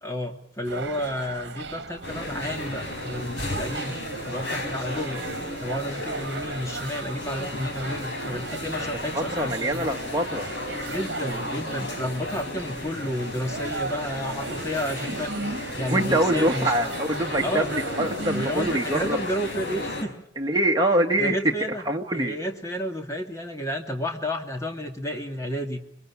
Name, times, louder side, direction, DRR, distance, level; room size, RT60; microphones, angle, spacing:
voice 1, 0.0-4.0 4.3-5.2 5.6-9.9 10.8-16.7 17.4-17.7 18.3-20.2 21.2-21.8 22.1-25.8, equal, 15° left, 3 dB, 2.5 m, -31 dB
sound 1, 0.6-19.1, right 3 dB, 65° right, 1.4 m, -37 dB
sound 2, 2.0-20.0, left 1 dB, 75° left, 5.2 m, -34 dB
voice 2, 9.1-10.5 15.9-19.2 20.4-21.4 21.7-22.4, right 1 dB, 20° right, 2 dB, 1.8 m, -24 dB
26.0 x 22.5 x 8.6 m, 0.65 s
head